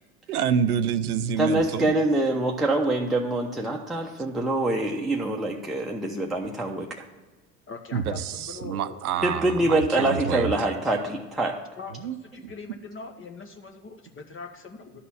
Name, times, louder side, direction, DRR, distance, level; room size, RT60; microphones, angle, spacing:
voice 1, 0.3-2.0 7.9-10.5 11.9-12.2, right 8 dB, 80° right, 13 dB, 0.6 m, -27 dB
voice 2, 1.4-6.9 9.2-11.6, right 2 dB, ahead, -2 dB, 0.8 m, -25 dB
voice 3, 7.7-9.0 11.8-11.9 12.2-15.0, left 4 dB, 30° left, 5 dB, 1.0 m, -41 dB
11.5 x 4.2 x 7.0 m, 1.2 s
hypercardioid pair, 65°, 43 cm